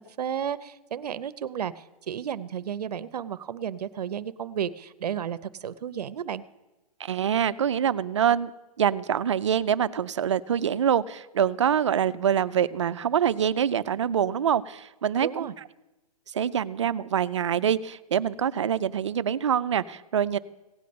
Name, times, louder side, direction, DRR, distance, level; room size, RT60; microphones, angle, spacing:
voice 1, 0.2-6.4 15.2-15.5, right 9 dB, 85° right, 14 dB, 0.7 m, -33 dB
voice 2, 7.0-8.5 8.8-15.5 16.3-20.4, right 8 dB, 50° right, 15 dB, 0.5 m, -25 dB
16.5 x 8.6 x 5.2 m, 1.0 s
hypercardioid pair, 180°, 20 cm